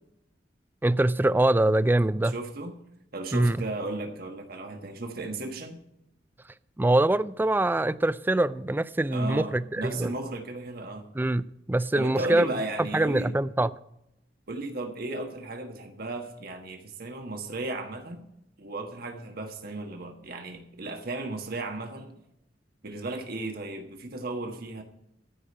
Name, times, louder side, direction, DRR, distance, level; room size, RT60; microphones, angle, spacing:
voice 1, 0.8-2.3 3.3-3.7 6.8-10.2 11.1-12.5 12.9-13.7, right 1 dB, 10° right, 0.4 m, -24 dB
voice 2, 2.2-2.8 3.1-5.8 9.1-11.1 11.9-13.3 14.5-18.3 18.6-22.1 22.8-24.8, right 2 dB, 55° right, 1.4 m, -35 dB
14.0 x 5.1 x 8.5 m
head